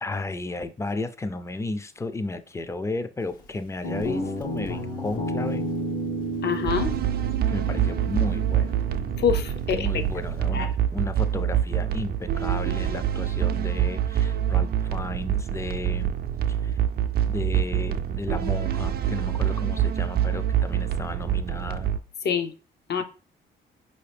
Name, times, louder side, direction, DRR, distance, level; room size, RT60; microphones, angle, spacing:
voice 1, 0.0-5.7 7.5-8.7 9.7-16.2 16.6-16.8 17.2-21.9, left 2 dB, 15° left, 0.4 m, -33 dB
Guitar, 3.8-10.4, right 1 dB, 80° left, 1.1 m, -32 dB
voice 2, 6.4-7.0 9.2-10.0 10.5-10.7 22.2-22.5 22.9-23.0, left 7 dB, 60° left, 0.6 m, -25 dB
sound 1, 6.7-22.0, right 10 dB, 50° right, 0.4 m, -26 dB
4.6 x 2.8 x 3.3 m
cardioid pair, 90°, 20 cm